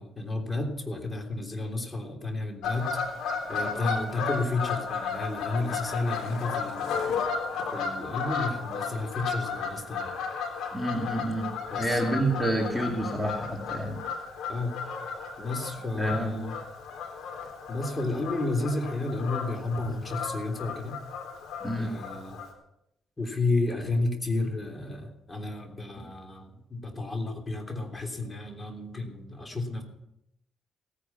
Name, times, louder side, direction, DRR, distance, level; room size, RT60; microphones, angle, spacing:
voice 1, 0.0-3.0 3.5-7.1 7.7-10.1 11.7-12.0 14.5-14.8 15.4-16.6 17.7-21.0 21.8-22.4 23.2-29.8, left 2 dB, 25° left, 3 dB, 3.3 m, -32 dB
Fowl / Bird vocalization bird call bird song, 2.6-22.5, left 5 dB, 80° left, 3.5 m, -34 dB
voice 2, 10.7-11.5 11.8-14.0 16.0-16.5 21.6-21.9, right 1 dB, ahead, 0 dB, 2.5 m, -28 dB
17.0 x 10.0 x 5.9 m, 0.81 s
cardioid pair, 90°, 0 cm